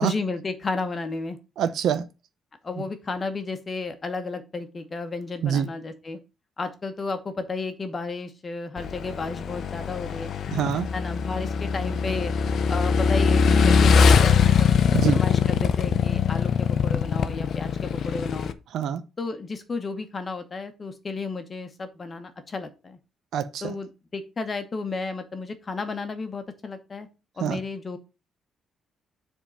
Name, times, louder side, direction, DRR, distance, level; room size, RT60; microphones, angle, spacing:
voice 1, 0.0-1.4 2.6-6.2 6.6-10.3 10.9-12.3 12.7-18.5 19.2-23.0 23.6-27.1 27.4-28.0, left 3 dB, 25° left, 1.0 m, -33 dB
voice 2, 1.6-2.1 2.8-2.9 5.4-5.7 10.5-10.9 14.9-15.2 18.7-19.0 23.3-23.7 27.4-27.6, right 9 dB, 70° right, 0.7 m, -25 dB
Motorcycle / Engine, 8.8-18.5, left 6 dB, 50° left, 0.6 m, -22 dB
7.5 x 3.6 x 5.6 m
cardioid pair, 170°, 0 cm